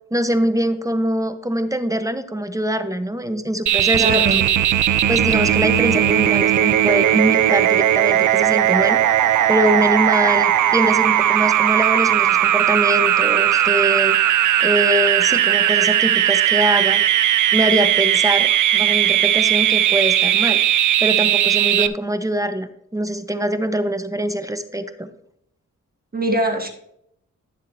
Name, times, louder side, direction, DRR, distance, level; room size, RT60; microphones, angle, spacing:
voice 1, 0.1-4.1 4.3-4.4 5.1-9.0 9.5-14.2 14.6-17.0 17.5-20.6 21.0-25.1, right 1 dB, 10° right, 9 dB, 1.0 m, -23 dB
sound 1, 3.7-21.9, right 11 dB, 80° right, 0.5 m, -17 dB
voice 2, 4.0-4.4 21.7-21.8 26.1-26.7, right 1 dB, 30° right, 3 dB, 1.6 m, -21 dB
11.5 x 7.3 x 2.7 m, 0.73 s
cardioid pair, 60°, 30 cm